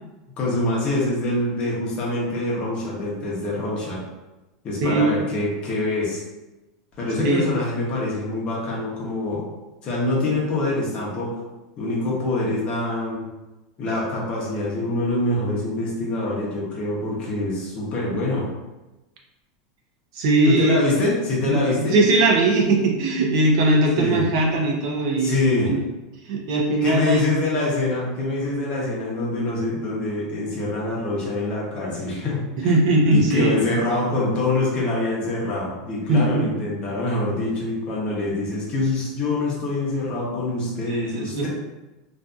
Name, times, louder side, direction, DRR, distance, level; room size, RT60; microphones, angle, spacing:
voice 1, 0.4-4.0 4.6-6.2 7.0-9.4 9.8-11.4 11.8-13.3 13.8-18.5 20.4-22.0 24.0-24.2 25.2-25.7 26.8-32.7 33.1-41.5, left 2 dB, 35° left, -5 dB, 0.8 m, -25 dB
voice 2, 20.1-20.8 21.5-25.4 25.7-25.8 26.3-27.2 32.6-33.5 36.1-36.4 40.9-41.5, right 2 dB, 65° right, 0 dB, 0.6 m, -20 dB
2.6 x 2.5 x 2.3 m, 1.1 s
supercardioid pair, 145°, 3 cm